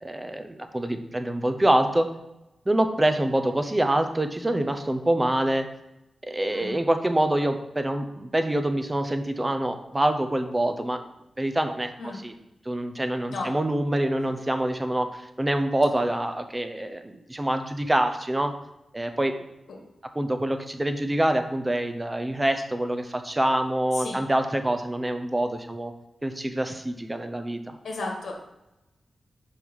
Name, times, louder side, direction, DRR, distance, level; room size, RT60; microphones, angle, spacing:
voice 1, 0.0-2.1 2.7-5.7 6.3-11.0 11.4-11.9 12.2-12.3 12.7-15.1 15.4-18.5 18.9-19.3 20.1-25.9 26.2-27.8, right 1 dB, 15° right, 7 dB, 0.6 m, -25 dB
voice 2, 27.8-28.3, left 3 dB, 75° left, 0 dB, 1.7 m, -33 dB
5.3 x 4.8 x 5.4 m, 0.92 s
wide cardioid pair, 110°, 0 cm